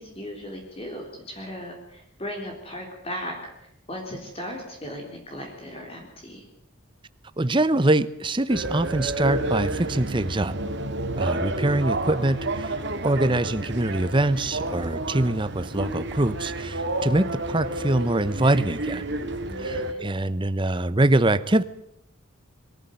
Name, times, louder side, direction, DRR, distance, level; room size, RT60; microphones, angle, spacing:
voice 1, 0.0-3.4 3.9-6.4 19.4-20.0, equal, 30° left, 1 dB, 3.9 m, -37 dB
voice 2, 7.4-10.5 11.2-12.7 13.0-19.0 19.6-21.6, right 2 dB, 25° right, 14 dB, 0.8 m, -24 dB
sound 1, 8.5-19.9, right 1 dB, 55° right, 2.2 m, -30 dB
23.0 x 14.5 x 9.3 m, 0.77 s
head